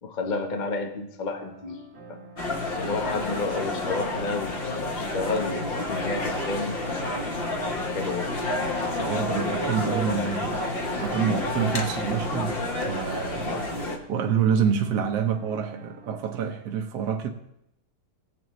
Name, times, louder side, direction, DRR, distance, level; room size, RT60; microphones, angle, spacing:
voice 1, 0.0-2.2 2.7-6.8 7.8-8.3, left 3 dB, 65° left, 0.4 m, -31 dB
sound 1, 1.2-16.2, equal, 40° right, 1.1 m, -47 dB
sound 2, 2.4-14.0, left 2 dB, 40° left, 0.8 m, -29 dB
voice 2, 9.1-10.7 11.0-12.6 12.9-17.3, right 7 dB, 65° right, 1.2 m, -27 dB
17.5 x 7.7 x 3.0 m
omnidirectional pair, 2.3 m